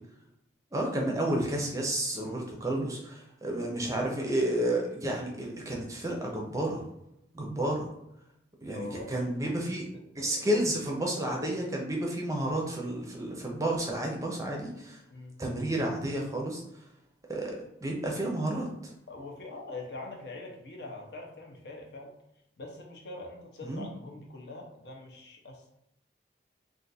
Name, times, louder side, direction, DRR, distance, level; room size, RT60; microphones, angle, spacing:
voice 1, 0.7-6.8 7.3-7.9 8.6-9.8 10.2-15.0 15.4-16.6 17.3-18.7 23.6-23.9, right 1 dB, 15° right, 0 dB, 0.5 m, -31 dB
voice 2, 8.7-9.7 10.2-10.6 15.1-15.4 19.1-22.1 22.6-25.7, left 2 dB, 65° left, 1 dB, 0.7 m, -44 dB
2.5 x 2.5 x 4.0 m, 0.81 s
head